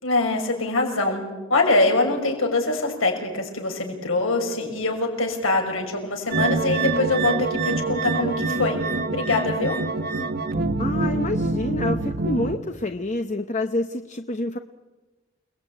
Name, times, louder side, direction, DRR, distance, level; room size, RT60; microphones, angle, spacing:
voice 1, 0.0-1.2 1.5-9.8, left 2 dB, 80° left, 2 dB, 6.2 m, -23 dB
sound 1, 6.3-12.6, right 3 dB, 50° right, 1.4 m, -25 dB
voice 2, 10.8-14.6, left 2 dB, 35° left, 8 dB, 0.9 m, -27 dB
29.5 x 20.0 x 9.2 m, 1.2 s
head